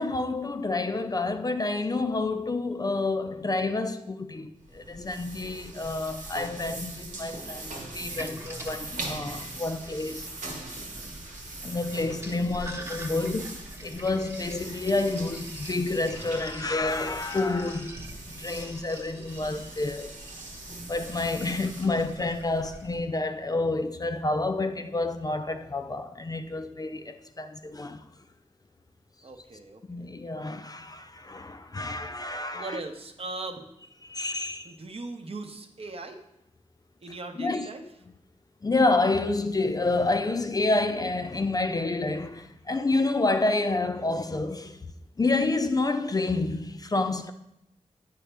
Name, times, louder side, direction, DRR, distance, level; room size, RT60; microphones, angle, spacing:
voice 1, 0.0-10.4 11.6-20.1 20.9-28.1 29.9-32.8 34.0-34.8 37.4-37.7 38.6-44.8 45.2-47.3, left 2 dB, 30° left, 0.4 m, -29 dB
sound 1, 4.6-23.1, right 2 dB, 85° right, 1.3 m, -41 dB
Sink (filling or washing), 8.0-23.0, right 1 dB, 20° right, 0.9 m, -47 dB
voice 2, 29.2-30.1 32.5-33.8 34.6-36.2 37.0-37.8, right 2 dB, 50° right, 0.8 m, -39 dB
8.9 x 5.0 x 3.3 m
wide cardioid pair, 80°, 13 cm